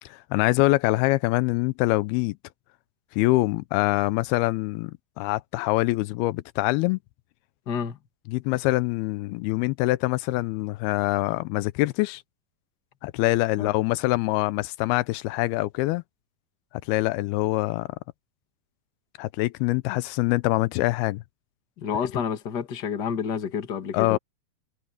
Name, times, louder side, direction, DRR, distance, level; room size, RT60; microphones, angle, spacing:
voice 1, 0.0-2.4 3.1-4.9 5.2-7.0 8.3-12.2 13.0-16.0 16.9-17.9 19.2-21.2 23.9-24.2, left 20 dB, 85° left, 2.5 m, -24 dB
voice 2, 7.7-8.0 13.6-13.7 21.8-24.2, left 7 dB, 35° left, 1.8 m, -29 dB
omnidirectional pair, 4.4 m